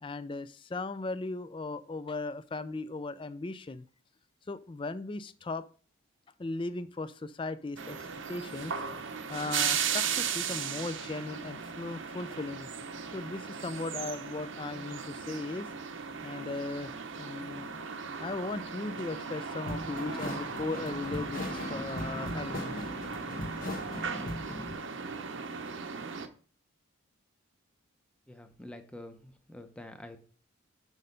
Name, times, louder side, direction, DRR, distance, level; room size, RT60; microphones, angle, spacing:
voice 1, 0.0-3.8 4.5-5.7 6.4-12.7 13.1-15.7 16.2-16.9 17.2-17.8 18.2-22.8, left 3 dB, 25° left, 14 dB, 0.4 m, -37 dB
sound 1, 7.8-26.3, right 6 dB, 60° right, 0.7 m, -37 dB
sound 2, 19.7-24.7, left 1 dB, 40° left, 1.3 m, -39 dB
voice 2, 28.3-30.2, left 1 dB, 5° left, 7 dB, 0.7 m, -47 dB
6.3 x 5.5 x 5.1 m, 0.41 s
head